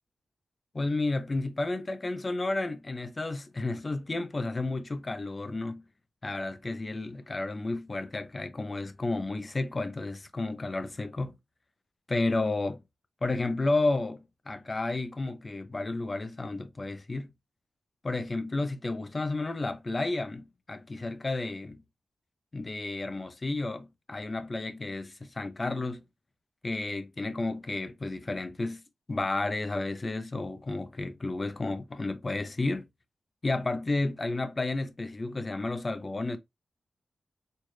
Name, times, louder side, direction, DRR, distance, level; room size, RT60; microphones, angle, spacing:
voice 1, 0.7-5.8 6.2-11.4 12.1-12.8 13.2-17.3 18.0-21.8 22.5-26.0 26.6-28.8 29.1-32.9 33.4-36.4, left 2 dB, 30° left, 0.6 m, -32 dB
4.4 x 2.4 x 3.2 m
wide cardioid pair, 120°, 0 cm